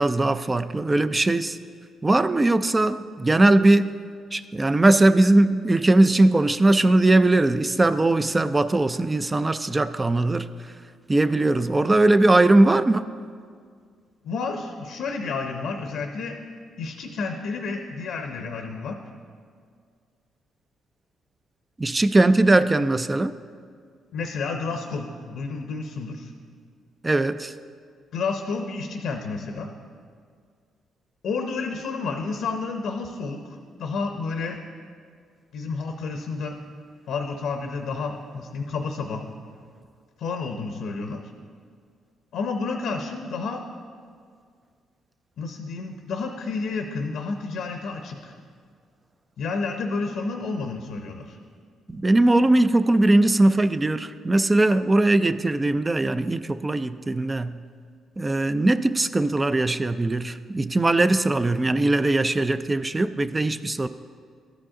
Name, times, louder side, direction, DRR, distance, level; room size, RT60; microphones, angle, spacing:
voice 1, 0.0-1.6 2.0-3.9 4.3-10.5 11.1-13.1 21.8-23.3 27.0-27.5 51.9-57.6 58.2-63.9, right 2 dB, 20° right, 12 dB, 0.3 m, -20 dB
voice 2, 14.2-16.4 16.8-19.0 24.1-26.3 28.1-29.7 31.2-34.6 35.5-36.6 37.1-39.2 40.2-41.2 42.3-43.6 45.4-48.3 49.4-51.4, left 4 dB, 70° left, 4 dB, 0.6 m, -30 dB
12.5 x 5.1 x 3.7 m, 2.1 s
cardioid pair, 90°, 0 cm